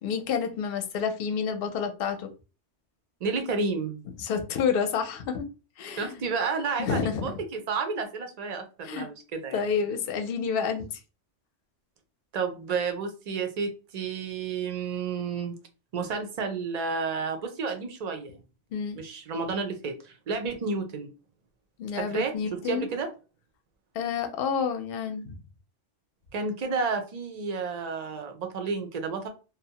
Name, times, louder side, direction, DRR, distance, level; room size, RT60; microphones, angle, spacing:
voice 1, 0.0-2.3 4.2-5.5 5.8-6.2 6.8-7.4 8.8-9.1 9.5-11.0 18.7-19.0 21.8-22.9 23.9-25.4, left 6 dB, 60° left, 0.7 m, -29 dB
voice 2, 3.2-4.0 6.0-9.6 12.3-15.6 15.9-18.4 19.0-21.1 21.9-23.1 26.3-29.3, right 4 dB, 50° right, 0.5 m, -31 dB
2.7 x 2.0 x 2.7 m
omnidirectional pair, 1.2 m